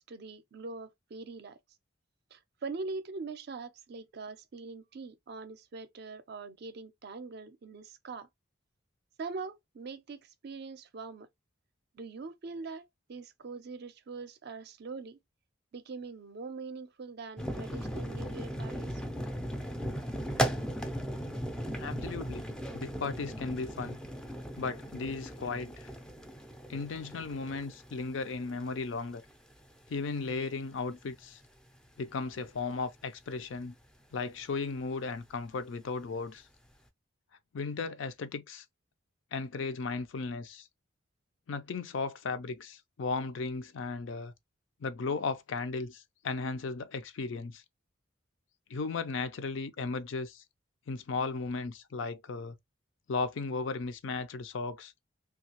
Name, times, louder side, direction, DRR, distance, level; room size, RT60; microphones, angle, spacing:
voice 1, 0.1-1.6 2.3-8.3 9.2-11.3 11.9-12.8 13.1-15.2 15.7-19.0, right 4 dB, 55° right, 0.5 m, -42 dB
sound 1, 17.4-29.9 30.2-30.4 30.9-31.0 31.2-31.5 32.3-32.5, equal, 5° left, 0.4 m, -37 dB
voice 2, 21.8-22.5 22.7-24.0 24.6-25.9 26.7-29.2 29.9-31.4 32.0-33.7 34.1-36.5 37.5-38.6 39.3-40.7 41.5-44.3 44.8-47.6 48.7-50.4 50.9-52.5 53.1-54.9, left 4 dB, 70° left, 0.4 m, -35 dB
3.1 x 2.3 x 2.8 m
head